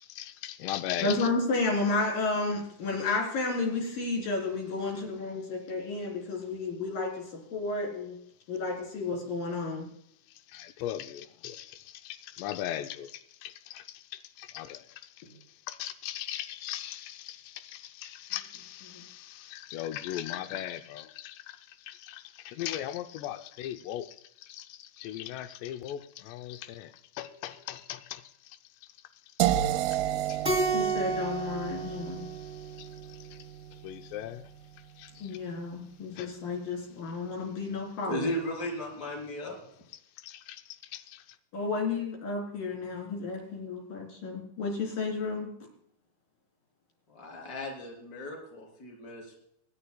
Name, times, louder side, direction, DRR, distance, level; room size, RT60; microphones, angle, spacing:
voice 1, 0.0-1.3 10.5-14.0 14.4-15.0 15.7-21.6 21.9-28.6 29.9-30.0 30.3-30.9 31.6-33.4 33.8-34.4 35.0-35.3 36.2-36.3 40.2-40.6 40.9-41.2, left 12 dB, 90° left, 8 dB, 2.4 m, -39 dB
voice 2, 1.0-8.2 8.5-9.9 18.9-19.0 30.7-32.3 35.2-38.3 41.5-45.5, left 3 dB, 50° left, 1 dB, 5.1 m, -32 dB
sound 1, 29.4-35.3, right 12 dB, 80° right, 2.9 m, -33 dB
Keyboard (musical), 30.4-33.1, right 4 dB, 10° right, 1.6 m, -31 dB
voice 3, 38.0-39.5 47.1-49.3, equal, 20° left, 1 dB, 3.4 m, -36 dB
25.5 x 11.5 x 2.3 m, 0.70 s
omnidirectional pair, 5.7 m